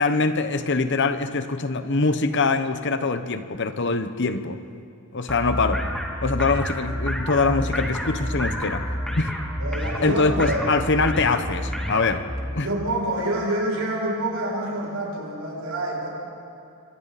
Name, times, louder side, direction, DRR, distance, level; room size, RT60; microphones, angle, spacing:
voice 1, 0.0-4.6 5.1-5.8 6.2-8.8 9.2-9.3 10.0-12.2 12.5-12.7, left 3 dB, 55° left, 10 dB, 1.0 m, -23 dB
sound 1, 5.3-12.4, equal, 5° left, 2.4 m, -29 dB
voice 2, 9.6-10.6 12.6-16.1, right 1 dB, 85° right, -3 dB, 6.9 m, -27 dB
27.0 x 25.0 x 4.2 m, 2.5 s
head